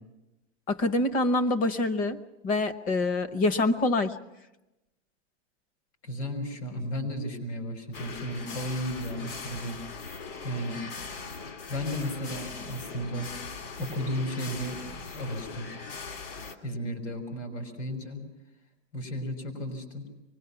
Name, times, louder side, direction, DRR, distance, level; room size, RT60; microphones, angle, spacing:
voice 1, 0.7-4.1, left 2 dB, 25° left, 11 dB, 0.8 m, -26 dB
voice 2, 6.0-10.1 10.4-10.8 11.7-13.3 13.8-14.8 15.1-15.7 16.6-18.2 18.9-20.1, equal, 80° left, 5 dB, 5.9 m, -34 dB
sound 1, 7.9-16.5, left 4 dB, 55° left, 2.5 m, -40 dB
24.5 x 21.0 x 5.9 m, 0.97 s
supercardioid pair, 160°, 35 cm